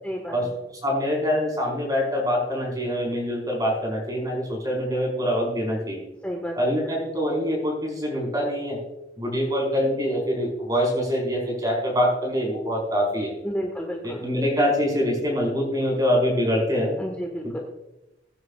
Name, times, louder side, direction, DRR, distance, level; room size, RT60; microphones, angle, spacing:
voice 1, 0.0-0.4 6.2-6.5 13.4-14.2 17.0-17.6, equal, 10° left, -1 dB, 1.6 m, -31 dB
voice 2, 0.8-6.0 6.6-8.8 9.2-13.3 14.0-17.0 17.4-17.6, equal, 20° right, -1 dB, 4.7 m, -24 dB
23.0 x 9.3 x 2.4 m, 0.92 s
head